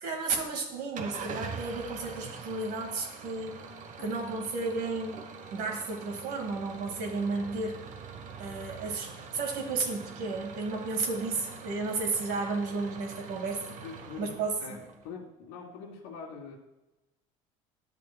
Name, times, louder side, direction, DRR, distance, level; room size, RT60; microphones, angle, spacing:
voice 1, 0.0-3.6 4.0-7.8 8.4-13.8 14.2-14.8, right 3 dB, 70° right, 3 dB, 1.8 m, -33 dB
Engine starting / Idling, 0.9-15.1, right 6 dB, 50° right, 1.0 m, -44 dB
voice 2, 13.8-14.3 14.6-14.8 15.0-16.6, left 5 dB, 85° left, -2 dB, 1.7 m, -43 dB
10.5 x 7.3 x 2.2 m, 0.98 s
supercardioid pair, 90°, 17 cm